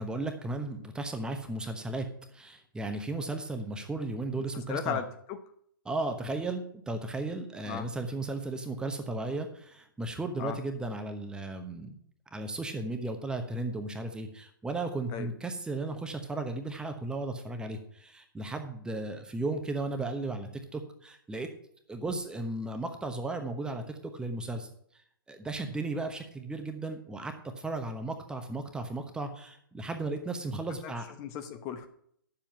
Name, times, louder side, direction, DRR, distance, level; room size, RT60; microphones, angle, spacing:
voice 1, 0.0-5.0 5.8-12.0 12.3-21.5 21.9-24.7 25.3-31.1, right 2 dB, 5° right, 6 dB, 1.0 m, -35 dB
voice 2, 4.7-5.4 7.6-7.9 10.4-10.6 15.1-15.3 30.8-30.9 31.2-31.9, left 8 dB, 30° left, 8 dB, 1.0 m, -35 dB
10.5 x 7.4 x 5.6 m, 0.66 s
figure-of-eight pair, 120°, 12 cm